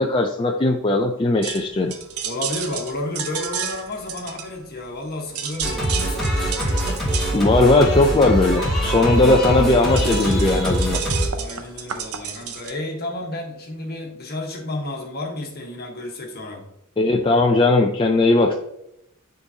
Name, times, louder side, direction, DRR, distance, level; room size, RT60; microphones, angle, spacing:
voice 1, 0.0-1.9 7.3-11.0 17.0-18.5, left 2 dB, 25° left, 1 dB, 0.4 m, -18 dB
sound 1, 1.4-5.0 5.3-12.7, right 7 dB, 90° right, 0.6 m, -32 dB
voice 2, 2.2-6.3 9.0-9.2 11.4-16.7, left 2 dB, 45° left, 1 dB, 1.3 m, -31 dB
Singing, 5.6-11.3, equal, ahead, 2.0 m, -23 dB
9.8 x 3.9 x 2.8 m, 0.80 s
head